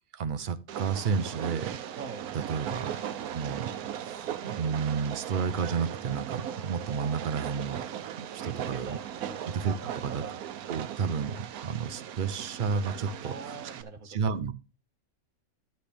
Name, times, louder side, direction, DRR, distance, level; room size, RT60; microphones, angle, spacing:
voice 1, 0.1-2.0 2.3-3.0 3.3-9.0 9.5-10.2 10.7-11.4 11.6-13.5 14.1-14.5, right 6 dB, 55° right, 0.5 m, -32 dB
Train, 0.7-13.8, right 10 dB, 90° right, 1.2 m, -38 dB
voice 2, 2.0-2.3 8.4-9.4 9.8-10.4 13.2-14.2, right 5 dB, 70° right, 1.7 m, -42 dB
11.5 x 7.8 x 3.4 m
omnidirectional pair, 1.5 m